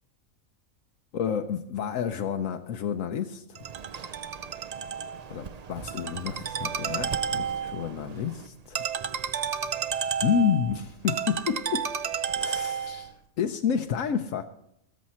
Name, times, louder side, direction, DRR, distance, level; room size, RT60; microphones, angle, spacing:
voice 1, 1.1-3.6 5.3-8.8 10.2-11.8 12.4-14.4, left 7 dB, 75° left, 5 dB, 1.1 m, -29 dB
Ringtone, 3.6-13.1, right 7 dB, 50° right, 0.5 m, -32 dB
15.0 x 14.0 x 4.3 m, 0.78 s
omnidirectional pair, 1.4 m